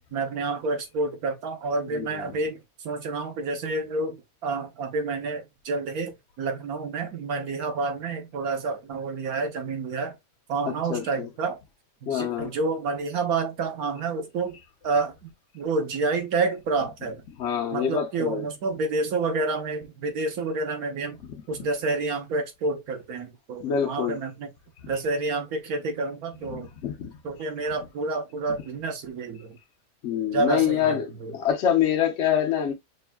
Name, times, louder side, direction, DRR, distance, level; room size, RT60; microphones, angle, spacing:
voice 1, 0.1-10.1 10.5-11.6 12.0-14.6 14.8-17.2 17.7-21.2 21.5-24.5 24.9-26.7 27.2-29.6 30.3-31.3, right 3 dB, 75° right, 1.4 m, -29 dB
voice 2, 1.9-2.4 10.7-11.3 12.1-12.5 17.4-18.4 23.6-24.2 26.5-27.1 30.0-32.7, left 9 dB, 60° left, 0.9 m, -26 dB
6.1 x 2.6 x 2.2 m
omnidirectional pair, 1.6 m